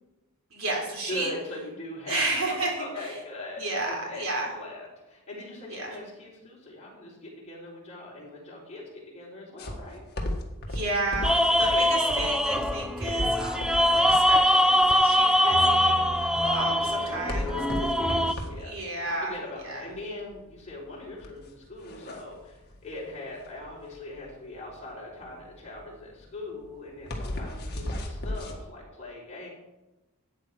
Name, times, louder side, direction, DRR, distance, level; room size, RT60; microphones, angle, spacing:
voice 1, 0.5-1.3 2.1-3.1 3.6-4.5 5.7-6.0 10.7-16.7 17.1-17.6 18.6-19.3 19.6-19.9, right 2 dB, 70° right, 0 dB, 3.8 m, -32 dB
voice 2, 1.1-10.1 11.6-11.8 16.4-18.7 19.2-29.5, left 2 dB, 30° left, -4 dB, 4.3 m, -40 dB
sound 1, 9.6-28.6, left 1 dB, 50° left, 1.8 m, -36 dB
sound 2, 11.2-18.3, equal, 5° right, 0.4 m, -23 dB
13.0 x 8.6 x 4.9 m, 1.0 s
head